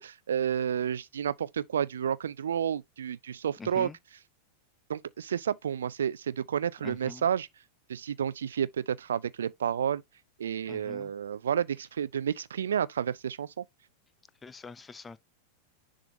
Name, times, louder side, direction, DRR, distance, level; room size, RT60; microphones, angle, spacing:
voice 1, 0.0-3.9 4.9-7.5 7.9-10.0 10.4-13.6, right 8 dB, 65° right, 0.5 m, -30 dB
voice 2, 3.6-4.0 6.8-7.3 10.7-11.1 14.4-15.2, left 4 dB, 15° left, 0.5 m, -44 dB
10.0 x 3.7 x 2.7 m
figure-of-eight pair, 90°, 0 cm